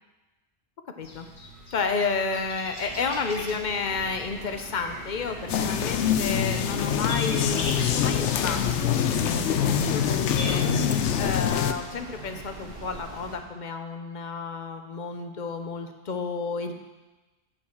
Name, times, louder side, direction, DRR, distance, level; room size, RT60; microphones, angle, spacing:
sound 1, 1.0-10.6, left 1 dB, 70° left, 1.7 m, -41 dB
voice 1, 1.7-10.7 11.2-16.7, left 4 dB, 50° left, 6 dB, 0.8 m, -31 dB
sound 2, 2.8-13.4, right 3 dB, 55° right, 1.3 m, -43 dB
sound 3, 5.5-11.7, left 8 dB, 90° left, 0.9 m, -25 dB
8.8 x 4.7 x 7.1 m, 1.1 s
omnidirectional pair, 1.1 m